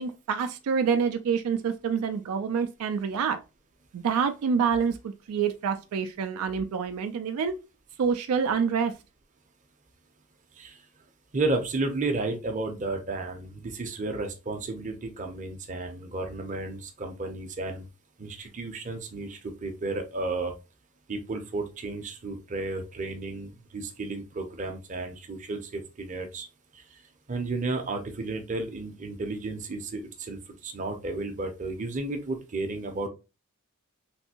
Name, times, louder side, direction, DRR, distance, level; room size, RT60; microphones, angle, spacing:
voice 1, 0.0-3.4 3.9-5.0 5.3-7.5 8.0-8.9, right 6 dB, 80° right, 0.3 m, -27 dB
voice 2, 11.3-17.8 18.2-20.5 21.1-26.5 26.7-26.8 27.3-33.1, right 2 dB, 35° right, 0.6 m, -33 dB
3.3 x 2.6 x 2.8 m
head